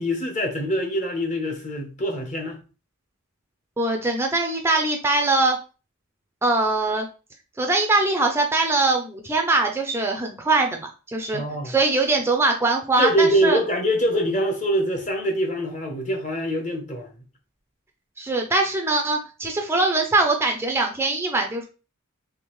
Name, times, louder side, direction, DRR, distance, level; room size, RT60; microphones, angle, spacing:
voice 1, 0.0-2.6 11.3-11.7 13.0-17.2, equal, 35° left, 0.9 m, -24 dB
voice 2, 3.8-5.6 6.4-7.1 7.6-10.8 11.1-13.6 18.2-21.6, right 2 dB, 10° right, 0.4 m, -22 dB
3.5 x 3.2 x 3.1 m
head